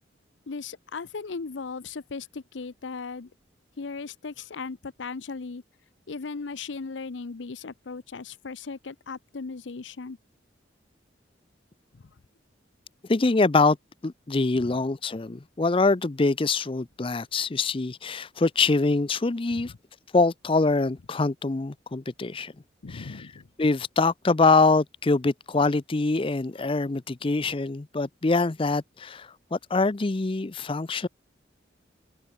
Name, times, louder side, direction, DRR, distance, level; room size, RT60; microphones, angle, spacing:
voice 1, 0.5-3.3 3.8-5.6 6.1-10.2 11.9-12.1 14.5-14.8 19.5-19.7 22.8-23.5, left 4 dB, 80° left, 0.7 m, -37 dB
voice 2, 13.1-13.8 14.0-19.7 20.1-22.5 22.9-23.3 23.6-31.1, left 3 dB, 30° left, 0.5 m, -24 dB
head